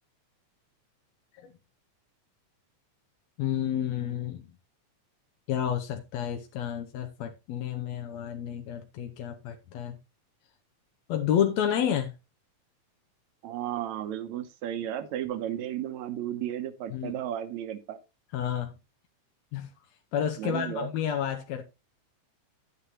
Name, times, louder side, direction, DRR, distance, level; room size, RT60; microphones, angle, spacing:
voice 1, 3.4-4.5 5.5-10.0 11.1-12.1 16.9-17.1 18.3-18.7 19.5-19.7 20.1-21.6, left 9 dB, 75° left, 1.9 m, -30 dB
voice 2, 13.4-18.0 20.4-20.9, right 11 dB, 75° right, 2.2 m, -34 dB
11.0 x 8.4 x 3.0 m
omnidirectional pair, 3.4 m